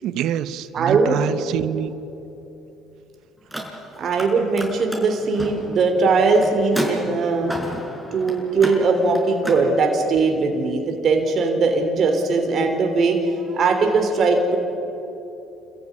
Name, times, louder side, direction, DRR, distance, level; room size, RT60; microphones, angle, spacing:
voice 1, 0.0-1.9, right 10 dB, 70° right, 14 dB, 1.0 m, -26 dB
voice 2, 0.7-1.2 4.0-7.5 8.1-14.6, right 4 dB, 55° right, 4 dB, 3.3 m, -20 dB
Car, 3.4-4.3 4.5-9.6, right 1 dB, ahead, 5.4 m, -31 dB
27.5 x 15.0 x 9.7 m, 2.9 s
supercardioid pair, 80°, 0 cm